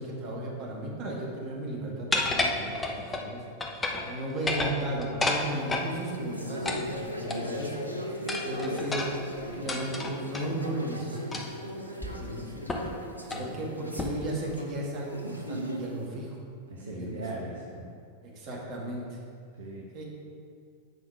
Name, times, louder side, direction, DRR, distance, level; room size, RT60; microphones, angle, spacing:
voice 1, 0.0-3.4 4.0-7.8 8.0-8.1 8.4-9.1 9.3-11.4 12.2-12.5 13.4-16.4 16.8-17.2 18.2-19.2 19.9-20.0, right 1 dB, 40° right, -3 dB, 2.0 m, -35 dB
sound 1, 2.1-3.3 3.6-4.1 4.4-5.9 6.6-7.7 8.3-10.5 11.3-11.6 12.0-12.1 12.7-12.9 13.2-13.5 14.0-14.3, left 2 dB, 15° left, 0.9 m, -31 dB
sound 2, 5.5-16.0, equal, 90° left, 0.8 m, -38 dB
voice 2, 16.7-18.0 19.6-19.9, right 2 dB, 65° right, -4 dB, 1.2 m, -40 dB
8.4 x 5.7 x 4.8 m, 2.2 s
figure-of-eight pair, 90°, 0 cm